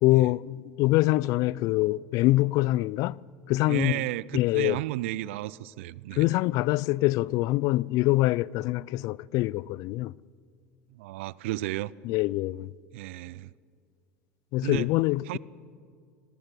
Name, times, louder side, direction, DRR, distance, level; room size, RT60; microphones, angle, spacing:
voice 1, 0.0-3.2 3.5-4.0 4.3-4.8 6.2-10.1 12.0-12.7 14.5-15.4, left 18 dB, 60° left, 0.4 m, -24 dB
voice 2, 3.7-6.3 10.9-11.9 12.9-13.5 14.6-14.9 15.3-15.4, right 17 dB, 75° right, 0.5 m, -33 dB
19.5 x 16.5 x 8.2 m
hypercardioid pair, 85°, 7 cm